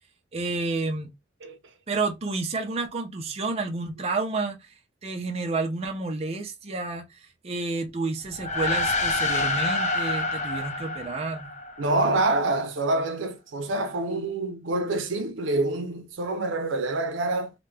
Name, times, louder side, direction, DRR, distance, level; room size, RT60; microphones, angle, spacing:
voice 1, 0.3-1.1 1.9-4.7 5.0-11.5, right 3 dB, 35° right, 0.5 m, -30 dB
sound 1, 8.3-12.0, left 2 dB, 40° left, 0.6 m, -27 dB
voice 2, 11.8-17.5, right 2 dB, 75° right, 0.6 m, -26 dB
2.9 x 2.1 x 3.3 m
head